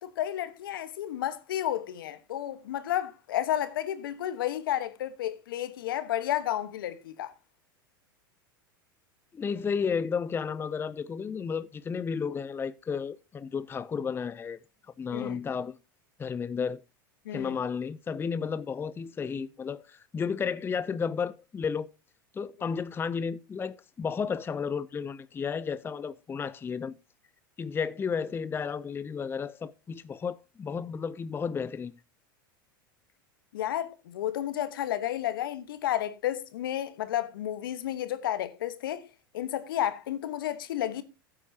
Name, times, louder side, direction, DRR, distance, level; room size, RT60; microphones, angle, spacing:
voice 1, 0.0-7.3 15.1-15.4 17.2-17.6 33.5-39.0 39.3-41.0, left 12 dB, 75° left, 1.3 m, -32 dB
voice 2, 9.3-14.6 15.0-15.8 16.2-16.8 17.3-21.9 22.3-26.9 27.6-31.9, left 6 dB, 20° left, 0.5 m, -32 dB
15.5 x 8.6 x 2.8 m
hypercardioid pair, 95°, 12 cm